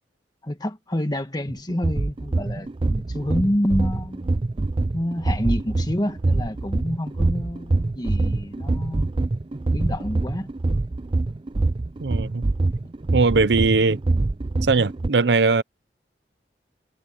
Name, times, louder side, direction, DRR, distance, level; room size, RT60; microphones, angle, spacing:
voice 1, 0.4-4.3 4.9-9.2 9.7-10.5, left 1 dB, 25° left, 1.6 m, -28 dB
sound 1, 1.5-15.1, right 2 dB, 30° right, 0.4 m, -25 dB
voice 2, 12.0-12.4 13.1-14.0 14.6-15.6, right 4 dB, 70° right, 0.7 m, -19 dB
head